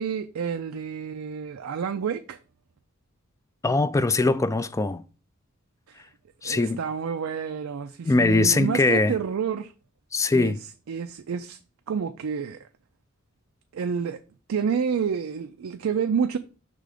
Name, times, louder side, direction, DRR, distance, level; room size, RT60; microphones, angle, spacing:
voice 1, 0.0-2.4 5.9-6.0 6.4-9.7 10.3-11.6 11.9-12.6 13.7-14.2 14.5-16.4, right 6 dB, 80° right, 0.4 m, -29 dB
voice 2, 3.6-5.0 6.4-6.8 8.0-9.1 10.1-10.6, left 3 dB, 15° left, 0.3 m, -21 dB
5.6 x 3.8 x 4.9 m
head